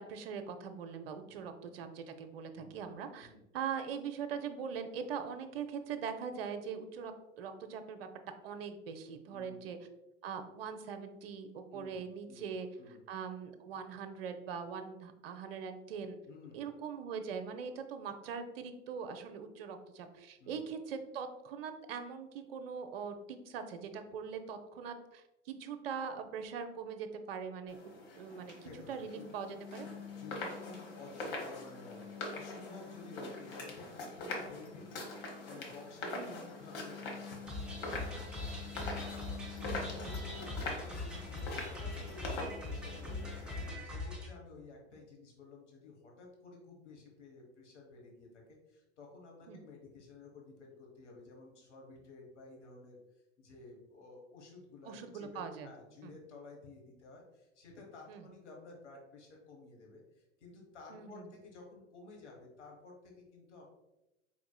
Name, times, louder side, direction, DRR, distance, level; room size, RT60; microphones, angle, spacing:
voice 1, 0.0-8.1 8.4-9.8 10.2-12.7 13.1-16.2 16.5-29.9 36.1-36.3 40.0-40.1 49.5-49.6 54.9-55.7 56.0-56.1 58.1-58.2 60.9-61.3, right 6 dB, 50° right, 8 dB, 0.5 m, -42 dB
voice 2, 2.5-2.9 3.2-3.4 9.3-9.7 11.7-12.0 12.3-12.5 12.8-13.0 16.3-16.6 17.7-17.8 20.4-20.6 28.6-29.2 30.1-38.7 39.2-63.6, left 3 dB, 70° left, 0 dB, 1.1 m, -53 dB
sound 1, 27.7-43.7, left 2 dB, 45° left, 1.1 m, -43 dB
sound 2, 37.5-44.3, left 3 dB, 5° right, 0.6 m, -41 dB
4.7 x 3.6 x 2.2 m, 0.95 s
figure-of-eight pair, 90°, 37 cm